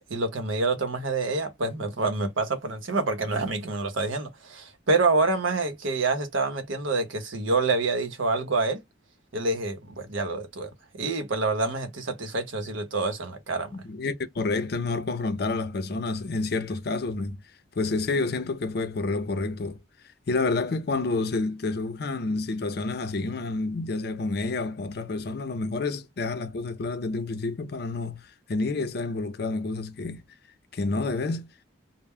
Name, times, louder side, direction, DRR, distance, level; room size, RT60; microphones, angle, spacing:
voice 1, 0.0-8.8 9.3-13.7, right 3 dB, 85° right, 0.8 m, -27 dB
voice 2, 13.8-17.4 17.8-19.8 20.3-28.2 28.5-30.2 30.7-31.5, left 3 dB, 55° left, 0.5 m, -29 dB
2.2 x 2.0 x 3.4 m
head